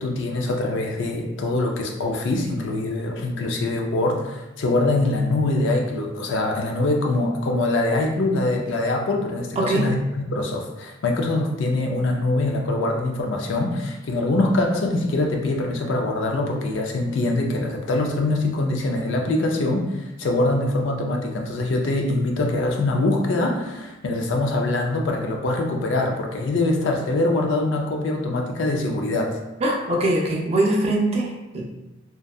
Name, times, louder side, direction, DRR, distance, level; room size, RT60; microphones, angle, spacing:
voice 1, 0.0-29.4, left 2 dB, 60° left, 2 dB, 0.4 m, -23 dB
voice 2, 9.6-9.9 29.6-31.6, right 1 dB, 30° right, -1 dB, 0.4 m, -22 dB
2.6 x 2.2 x 2.2 m, 1.0 s
head